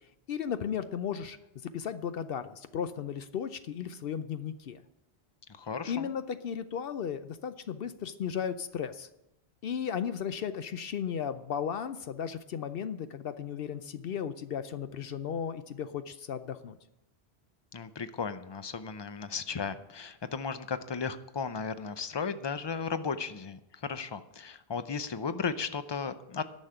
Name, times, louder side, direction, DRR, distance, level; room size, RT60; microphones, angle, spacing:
voice 1, 0.3-1.4 1.6-4.8 5.9-9.1 9.6-16.8, left 8 dB, 65° left, 11 dB, 0.7 m, -35 dB
voice 2, 5.6-6.1 17.7-26.4, left 5 dB, 35° left, 12 dB, 0.4 m, -35 dB
10.0 x 6.4 x 8.8 m, 0.91 s
omnidirectional pair, 1.1 m